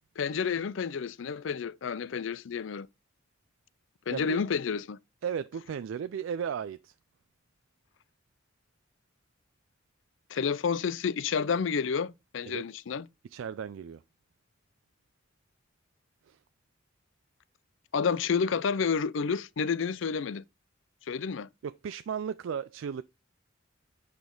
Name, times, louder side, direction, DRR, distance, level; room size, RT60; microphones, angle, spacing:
voice 1, 0.2-2.9 4.1-5.0 10.3-13.0 17.9-20.4 21.1-21.5, left 6 dB, 70° left, 0.4 m, -30 dB
voice 2, 4.1-4.4 5.2-6.9 12.5-12.6 13.3-14.0 16.3-16.4 21.6-23.0, right 7 dB, 85° right, 0.3 m, -35 dB
8.3 x 5.1 x 3.8 m
head